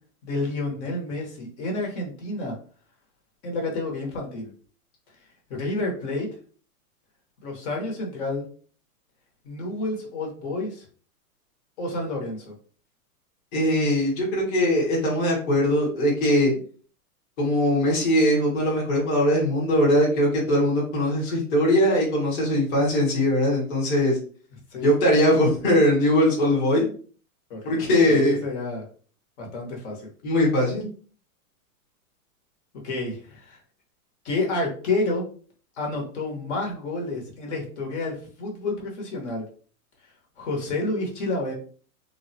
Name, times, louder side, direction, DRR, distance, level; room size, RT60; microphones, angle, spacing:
voice 1, 0.2-2.6 3.4-4.5 5.5-6.3 7.4-8.5 9.4-10.9 11.8-12.5 24.7-24.9 27.5-27.7 28.1-28.9 29.4-30.1 32.8-33.6 34.2-35.2 35.8-39.5 40.4-41.5, left 2 dB, 50° left, 0 dB, 1.0 m, -29 dB
voice 2, 13.5-16.5 17.4-24.2 24.8-26.8 27.6-28.4 30.2-30.9, equal, 20° left, -4 dB, 0.9 m, -21 dB
3.3 x 2.1 x 2.7 m, 0.42 s
supercardioid pair, 160°, 44 cm